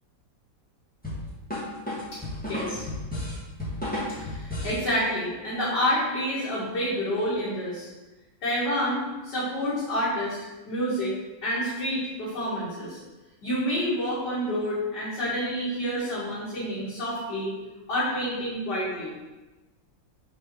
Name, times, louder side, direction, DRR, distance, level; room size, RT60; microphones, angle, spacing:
sound 1, 1.0-4.8, left 1 dB, 5° left, 2.1 m, -32 dB
voice 1, 2.5-2.8 4.2-7.9 8.4-10.4 10.6-11.2 11.4-13.0 13.4-17.5 17.9-19.1, equal, 65° left, -12 dB, 2.8 m, -28 dB
5.6 x 4.9 x 4.6 m, 1.1 s
omnidirectional pair, 2.1 m